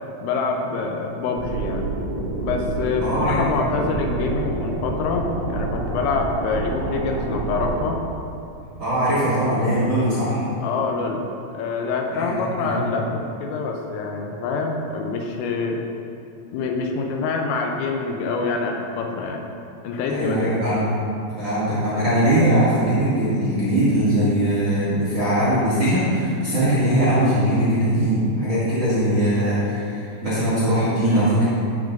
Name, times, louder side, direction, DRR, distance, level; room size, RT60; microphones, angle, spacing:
voice 1, 0.2-1.9 2.4-8.0 10.6-11.3 11.5-15.8 16.5-19.4 19.8-20.5, left 4 dB, 85° left, 2 dB, 3.2 m, -26 dB
sound 1, 1.4-7.8, right 2 dB, 80° right, 4.1 m, -28 dB
voice 2, 3.0-3.5 8.8-10.4 12.1-12.9 20.1-20.8 21.4-31.5, right 1 dB, 45° right, -11 dB, 1.6 m, -21 dB
13.0 x 7.2 x 2.6 m, 2.6 s
omnidirectional pair, 5.9 m